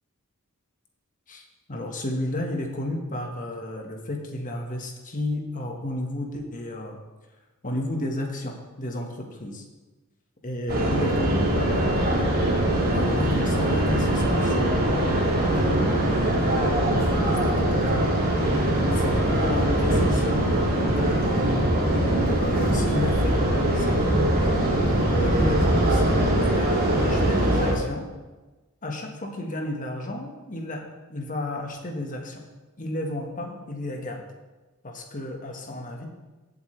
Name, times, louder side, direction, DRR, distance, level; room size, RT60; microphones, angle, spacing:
voice 1, 1.3-7.0 7.6-9.6 10.4-12.4 12.9-18.1 18.9-21.5 22.4-23.4 23.7-24.4 25.1-28.1 28.8-30.8 31.1-32.4 32.8-34.2 34.8-36.1, left 1 dB, 35° left, 2 dB, 1.6 m, -32 dB
sound 1, 10.7-27.7, right 1 dB, 40° right, 2.6 m, -22 dB
15.5 x 8.3 x 3.4 m, 1.2 s
head